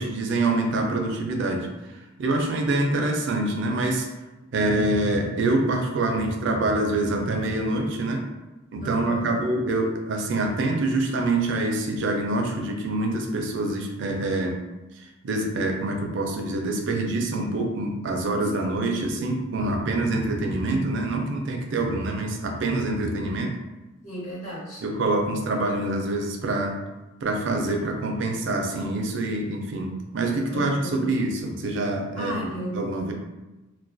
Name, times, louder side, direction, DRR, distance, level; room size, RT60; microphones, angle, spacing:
voice 1, 0.0-1.7 2.2-4.0 4.5-8.2 8.7-14.6 15.2-23.5 24.8-26.8 27.2-33.1, right 2 dB, 65° right, 2 dB, 0.4 m, -25 dB
voice 2, 8.8-9.4 18.6-19.1 19.6-19.8 24.0-24.8 30.5-31.0 32.1-32.9, right 1 dB, 35° left, -8 dB, 1.0 m, -35 dB
2.2 x 2.2 x 2.5 m, 1.1 s
head